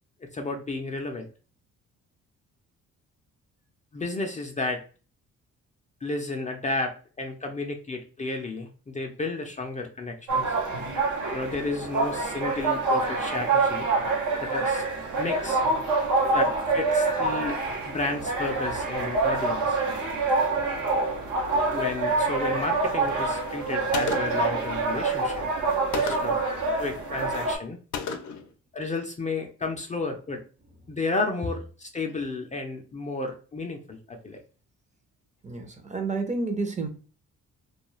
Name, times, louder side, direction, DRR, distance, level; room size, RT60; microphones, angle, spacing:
voice 1, 0.3-1.3 3.9-4.8 6.0-10.5 11.3-13.9 14.4-14.8 15.2-15.6 16.3-17.6 17.9-19.8 21.7-25.5 25.9-26.4 26.8-27.8 28.7-30.4 30.9-34.4, left 3 dB, 25° left, 0.4 m, -32 dB
sound 1, 10.3-27.6, right 3 dB, 75° right, 0.8 m, -26 dB
Gunshot gunfire, 23.9-24.5 25.9-26.5 27.9-28.5, left 5 dB, 70° left, 0.5 m, -32 dB
voice 2, 35.4-36.9, right 3 dB, 25° right, 0.6 m, -30 dB
2.3 x 2.3 x 3.0 m
cardioid pair, 90°, 30 cm